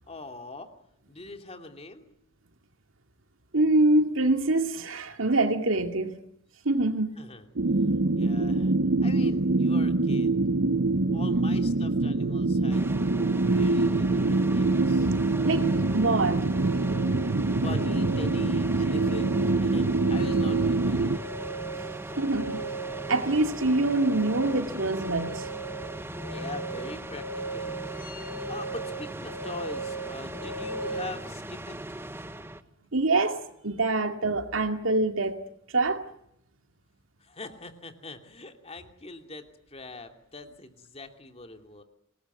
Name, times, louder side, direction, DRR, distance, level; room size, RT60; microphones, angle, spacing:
voice 1, 0.1-0.7 1.1-2.1 7.2-7.5 8.1-8.7 9.0-10.4 11.1-12.9 13.5-15.1 17.5-19.4 19.6-21.5 26.3-27.8 28.5-31.7 37.2-41.8, left 2 dB, 30° left, 2.8 m, -42 dB
voice 2, 3.5-6.1 6.6-7.2 13.7-13.9 15.1-15.2 15.4-16.5 22.2-22.6 23.1-25.5 32.9-35.4 35.7-36.0, right 2 dB, 80° right, 2.4 m, -25 dB
sound 1, 7.6-21.2, right 2 dB, 60° right, 1.0 m, -24 dB
sound 2, 12.7-32.6, right 1 dB, 10° right, 1.1 m, -39 dB
sound 3, 14.5-31.0, right 3 dB, 50° left, 4.7 m, -39 dB
26.0 x 20.0 x 9.4 m
head